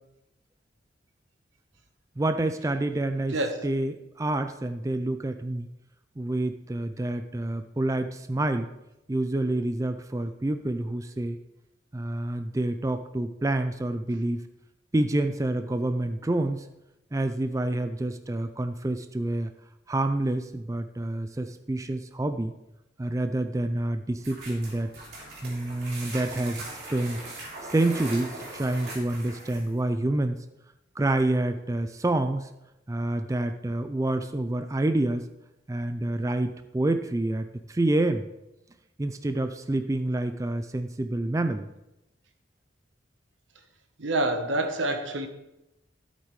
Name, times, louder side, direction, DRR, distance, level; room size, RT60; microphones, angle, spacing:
voice 1, 2.2-3.3 3.6-5.7 6.2-8.7 9.1-11.4 11.9-14.4 14.9-16.7 17.1-19.5 19.9-22.5 23.0-24.9 25.4-27.2 27.6-30.4 31.0-32.5 32.9-35.3 35.7-38.2 39.0-41.7, right 1 dB, 15° right, 9 dB, 0.4 m, -28 dB
voice 2, 3.3-3.7 44.0-45.3, right 2 dB, 90° right, 6 dB, 1.1 m, -27 dB
sound 1, 24.2-29.8, right 2 dB, 60° right, 3.3 m, -40 dB
12.5 x 8.1 x 3.2 m, 0.91 s
head